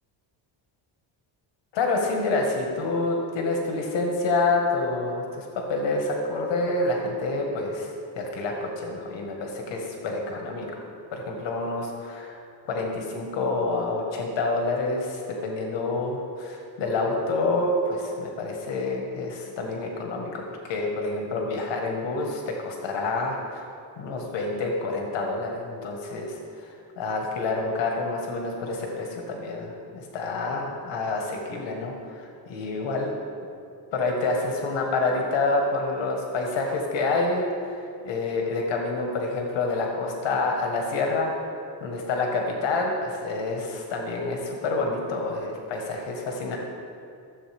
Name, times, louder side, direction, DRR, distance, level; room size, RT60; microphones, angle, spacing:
voice 1, 1.7-10.8 11.1-12.4 12.7-23.7 24.0-33.1 33.9-41.3 41.8-46.6, left 3 dB, 65° left, 1 dB, 1.5 m, -28 dB
14.0 x 7.5 x 3.5 m, 2.5 s
cardioid pair, 160°, 46 cm